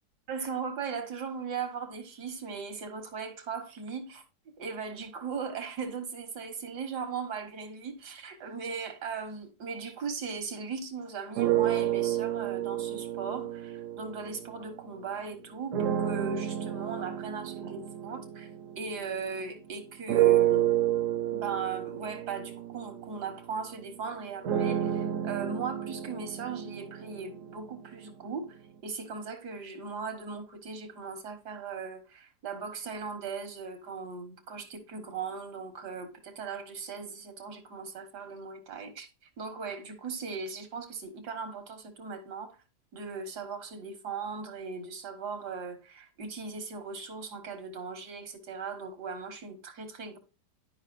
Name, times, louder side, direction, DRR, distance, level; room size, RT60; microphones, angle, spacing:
voice 1, 0.3-4.2 4.6-18.5 18.8-20.7 21.3-39.1 39.4-42.6 42.9-50.2, right 5 dB, 85° right, 1.9 m, -38 dB
sound 1, 11.4-14.9 15.7-19.5 20.1-28.0, right 12 dB, 65° right, 0.9 m, -30 dB
11.0 x 5.2 x 2.5 m
omnidirectional pair, 1.7 m